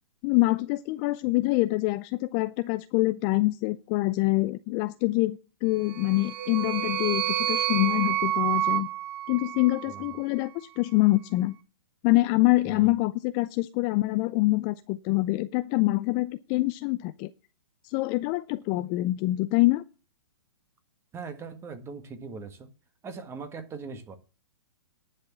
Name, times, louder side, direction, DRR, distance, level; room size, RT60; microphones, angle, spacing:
voice 1, 0.2-8.9 9.3-11.6 12.0-17.3 17.8-19.8, left 20 dB, 35° left, 0.5 m, -25 dB
sound 1, 5.8-10.2, right 12 dB, 55° right, 1.3 m, -29 dB
voice 2, 21.1-22.7 23.0-24.2, right 5 dB, 20° right, 1.7 m, -40 dB
10.5 x 6.5 x 7.3 m
hypercardioid pair, 130°, 14 cm